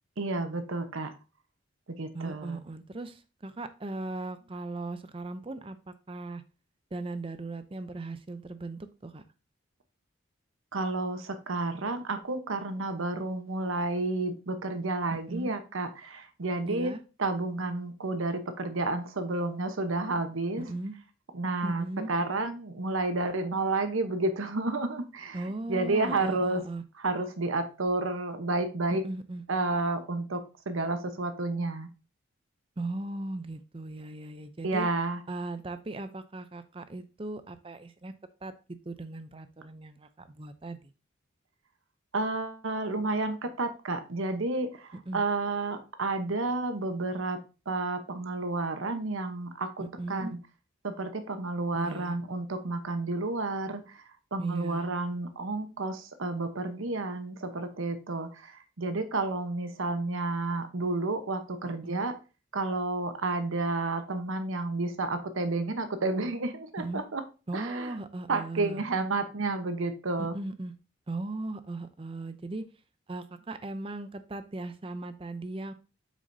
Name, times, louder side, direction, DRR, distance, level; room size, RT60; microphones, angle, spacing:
voice 1, 0.2-1.1 1.9-2.6 10.7-16.9 17.2-20.6 21.3-25.4 25.7-26.6 27.0-29.0 29.5-31.9 34.6-35.2 42.1-47.4 47.7-50.4 50.8-54.0 54.3-62.1 62.5-67.2 67.5-67.9 68.3-70.4, right 2 dB, 80° right, 9 dB, 0.9 m, -31 dB
voice 2, 2.1-6.4 6.9-9.2 15.1-15.6 16.7-17.0 20.6-21.0 21.6-22.1 25.3-26.8 28.9-29.4 32.8-34.9 35.3-38.1 38.4-40.9 45.1-45.2 49.8-50.3 51.7-52.2 54.4-54.9 61.6-62.0 66.8-67.0 67.5-68.8 70.2-70.7 71.1-72.7 73.1-75.7, right 2 dB, 25° right, 11 dB, 0.5 m, -38 dB
7.8 x 6.2 x 2.7 m, 0.32 s
head